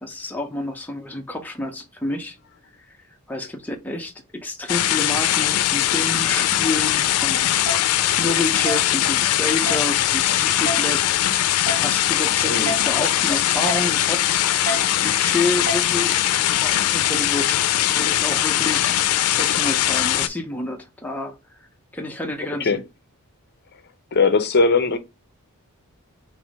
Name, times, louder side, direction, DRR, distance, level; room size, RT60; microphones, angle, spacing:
voice 1, 0.0-2.4 3.3-7.5 8.2-11.0 11.8-14.3 15.0-16.3 16.6-19.0 19.3-21.4 21.9-22.8, left 2 dB, 10° left, 0.6 m, -29 dB
sound 1, 4.7-20.3, left 12 dB, 85° left, 0.4 m, -21 dB
sound 2, 7.7-7.8 8.7-8.8 9.7-9.8 10.7-10.8 11.7-11.8 12.7-12.8 13.7-13.8 14.7-14.8 15.7-15.8, right 2 dB, 30° right, 1.2 m, -27 dB
voice 2, 24.1-25.0, left 4 dB, 50° left, 0.7 m, -19 dB
3.5 x 3.1 x 4.8 m
head